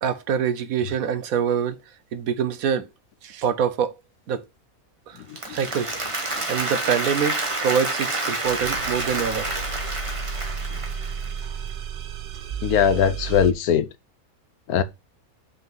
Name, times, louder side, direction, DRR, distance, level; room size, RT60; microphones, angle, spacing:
voice 1, 0.0-1.8 2.1-2.9 3.2-3.9 4.3-4.4 5.1-5.2 5.5-9.5, right 7 dB, 75° right, 1.3 m, -25 dB
Applause, 5.2-11.4, right 2 dB, 25° right, 1.3 m, -28 dB
sound 1, 8.4-13.5, right 6 dB, 50° right, 0.5 m, -32 dB
voice 2, 12.6-13.8 14.7-14.8, left 8 dB, 85° left, 1.2 m, -19 dB
5.9 x 4.0 x 5.4 m
omnidirectional pair, 1.5 m